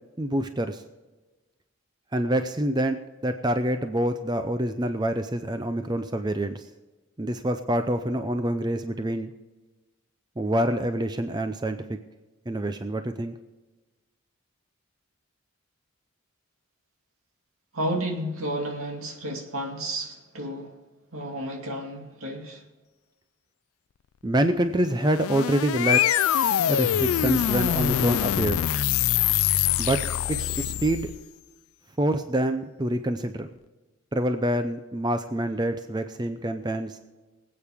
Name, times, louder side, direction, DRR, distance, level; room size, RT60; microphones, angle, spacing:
voice 1, 0.2-0.8 2.1-6.7 7.2-9.3 10.4-12.0 12.5-13.3 24.2-26.2 26.7-28.6 29.8-30.0 30.3-31.1 32.0-33.5 34.1-37.0, right 1 dB, 20° right, 0.5 m, -26 dB
voice 2, 17.7-20.7 21.1-22.6, right 1 dB, 75° right, 2.4 m, -32 dB
sound 1, 24.9-31.2, left 10 dB, 75° left, 0.4 m, -24 dB
23.5 x 8.6 x 3.6 m
head